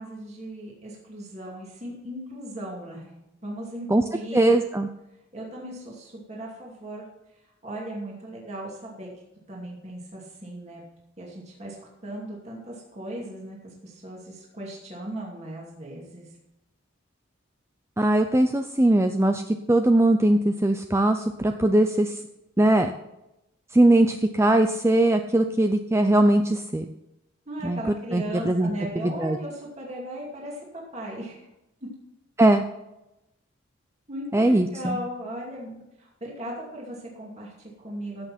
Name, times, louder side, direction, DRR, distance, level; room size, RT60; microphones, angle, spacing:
voice 1, 0.0-3.1 3.4-4.5 5.3-7.1 7.6-9.1 9.5-10.8 11.2-11.8 12.0-16.3 27.5-31.4 31.8-31.9 34.1-38.3, right 1 dB, 35° right, -3 dB, 2.5 m, -37 dB
voice 2, 4.3-4.9 18.0-22.2 22.6-22.9 23.7-26.8 27.6-27.8 28.1-28.7 29.0-29.4 32.4-32.6 34.3-35.0, right 1 dB, 15° right, 6 dB, 0.4 m, -20 dB
14.0 x 8.2 x 4.3 m, 0.92 s
head